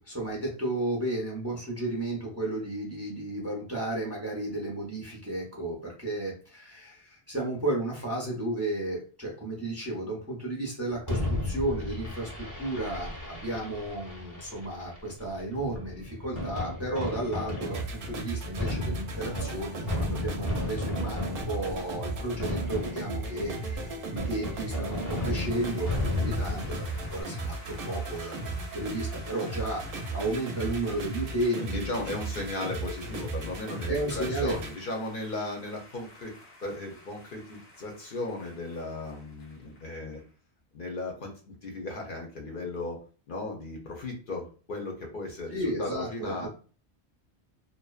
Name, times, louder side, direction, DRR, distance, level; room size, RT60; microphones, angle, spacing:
voice 1, 0.0-31.9 32.3-32.4 33.9-34.6 45.5-46.5, right 1 dB, 20° right, -3 dB, 0.5 m, -33 dB
Fireworks, 11.1-27.2, left 2 dB, 20° left, 0.6 m, -34 dB
sound 1, 17.6-34.7, right 2 dB, 65° right, 0.7 m, -36 dB
sound 2, 24.8-40.3, left 1 dB, 75° left, 1.0 m, -51 dB
voice 2, 31.6-36.3 36.6-40.2 40.7-43.0 43.3-46.5, left 2 dB, 60° left, 1 dB, 0.7 m, -36 dB
2.6 x 2.1 x 2.3 m, 0.37 s
omnidirectional pair, 1.1 m